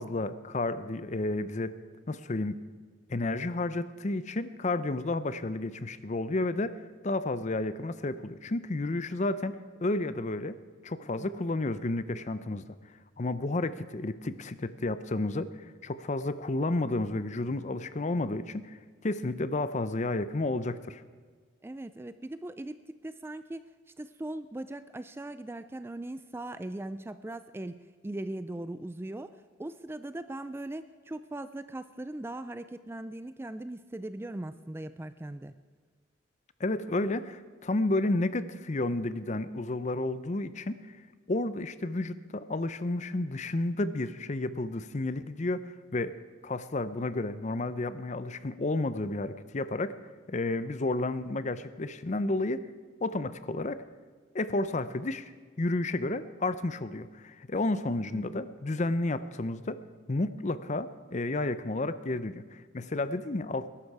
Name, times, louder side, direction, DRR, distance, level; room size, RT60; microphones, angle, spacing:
voice 1, 0.0-1.7 2.1-2.6 3.1-6.8 7.0-10.6 10.8-12.6 13.2-18.8 19.0-21.0 36.6-40.9 41.3-45.6 45.9-46.1 46.4-49.9 50.3-52.7 53.0-53.8 54.3-55.3 55.6-59.8 60.1-63.7, left 2 dB, 35° left, 14 dB, 0.6 m, -31 dB
voice 2, 21.6-23.7 24.0-27.8 28.0-35.6 58.1-58.3, right 1 dB, 10° right, 12 dB, 0.3 m, -39 dB
20.5 x 11.5 x 4.8 m, 1.5 s
head